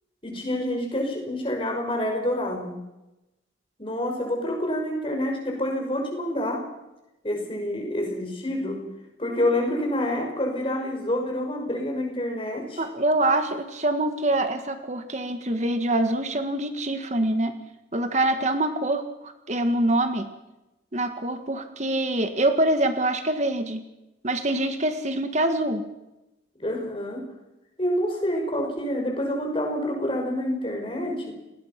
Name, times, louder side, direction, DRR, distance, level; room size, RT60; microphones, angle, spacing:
voice 1, 0.2-2.8 3.8-6.7 7.2-8.9 9.2-12.8 26.6-27.3 27.8-31.3, left 1 dB, 30° left, 2 dB, 6.0 m, -27 dB
voice 2, 12.8-17.5 17.9-20.3 20.9-23.8 24.2-25.8, right 1 dB, 40° right, 7 dB, 1.7 m, -25 dB
30.0 x 19.5 x 6.0 m, 0.96 s
head